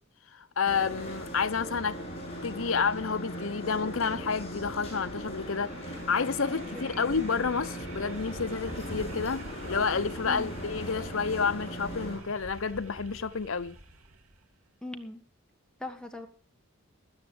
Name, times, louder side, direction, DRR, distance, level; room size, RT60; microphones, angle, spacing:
voice 1, 0.3-2.0 2.4-13.8, left 5 dB, 65° left, 0.8 m, -30 dB
sound 1, 0.6-12.2, equal, 30° left, 7.6 m, -39 dB
sound 2, 5.2-14.4, right 1 dB, 80° right, 2.7 m, -47 dB
voice 2, 6.5-7.2 10.2-10.6 14.8-15.2 15.8-16.3, left 2 dB, 5° left, 1.6 m, -41 dB
17.0 x 12.5 x 3.4 m
head